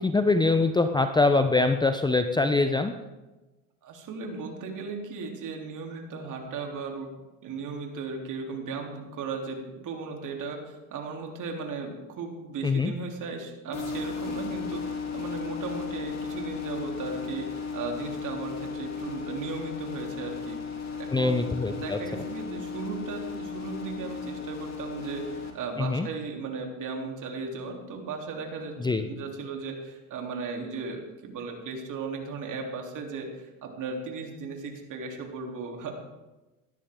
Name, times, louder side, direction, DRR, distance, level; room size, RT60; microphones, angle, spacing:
voice 1, 0.0-2.9 12.6-12.9 21.1-22.0 25.8-26.1 28.8-29.1, left 3 dB, 10° left, 8 dB, 0.8 m, -23 dB
voice 2, 3.8-7.1 7.4-35.9, right 4 dB, 45° right, 2 dB, 3.4 m, -36 dB
sound 1, 13.7-25.5, left 5 dB, 40° left, 3.0 m, -35 dB
18.0 x 13.0 x 3.7 m, 1.1 s
hypercardioid pair, 85°, 43 cm